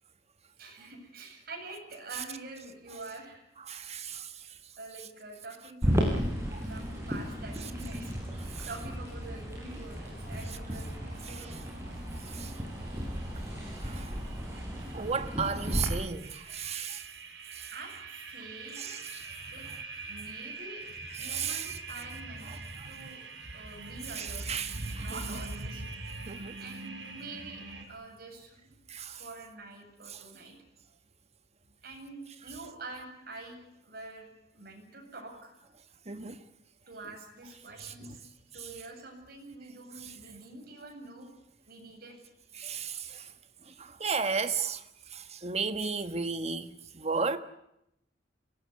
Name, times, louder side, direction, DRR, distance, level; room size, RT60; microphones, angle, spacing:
voice 1, 0.6-3.5 4.8-11.6 17.7-19.0 19.5-19.7 20.1-20.9 21.1-22.5 22.9-23.2 23.5-24.5 25.0-25.8 26.6-28.8 29.2-30.5 31.8-34.3 34.5-35.6 36.9-38.2 38.5-41.3 41.7-42.2, right 2 dB, 60° right, 8.0 m, -46 dB
voice 2, 3.7-4.3 8.5-8.7 12.3-12.5 13.8-14.1 14.9-17.1 17.5-17.7 18.8-19.3 21.2-21.7 22.5-22.9 24.2-25.4 26.1-26.6 28.9-29.2 30.1-30.2 36.1-36.4 42.5-43.3 43.7-44.8 45.1-47.4, right 5 dB, 35° right, 1.5 m, -34 dB
sound 1, 5.8-15.9, equal, 15° right, 6.4 m, -34 dB
sound 2, 10.0-27.8, right 4 dB, 75° right, 4.5 m, -46 dB
25.0 x 18.5 x 9.7 m
head